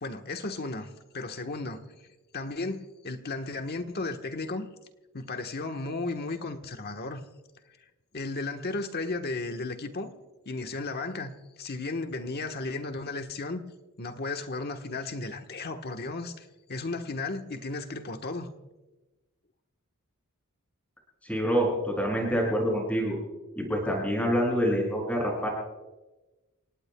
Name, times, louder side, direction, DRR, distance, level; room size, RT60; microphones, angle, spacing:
voice 1, 0.0-1.8 2.3-4.7 5.1-7.2 8.1-10.1 10.4-13.6 14.0-18.5, left 3 dB, 50° left, 1.2 m, -34 dB
voice 2, 21.2-23.2 23.5-25.5, equal, 5° left, 6.6 m, -26 dB
29.0 x 18.0 x 2.3 m
head